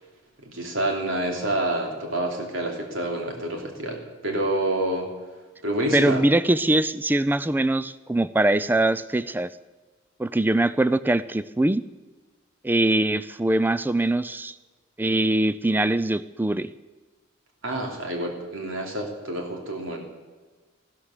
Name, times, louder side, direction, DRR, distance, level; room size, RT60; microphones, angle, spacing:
voice 1, 0.4-5.1 5.6-6.2 17.6-20.0, right 1 dB, 80° right, 1 dB, 3.2 m, -28 dB
voice 2, 5.9-9.5 10.2-11.8 12.6-14.6 15.0-16.7, right 1 dB, 10° right, 15 dB, 0.4 m, -22 dB
14.5 x 13.0 x 6.7 m, 1.3 s
head